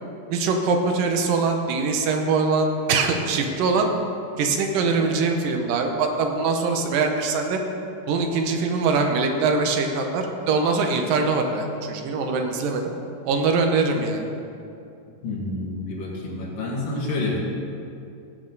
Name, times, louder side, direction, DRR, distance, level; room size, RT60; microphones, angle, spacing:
voice 1, 0.3-3.9 4.4-7.6 8.1-12.9 13.3-14.2, right 4 dB, 85° right, 3 dB, 2.7 m, -23 dB
voice 2, 15.2-17.4, left 2 dB, 80° left, -4 dB, 3.6 m, -28 dB
16.5 x 8.5 x 4.0 m, 2.6 s
omnidirectional pair, 3.9 m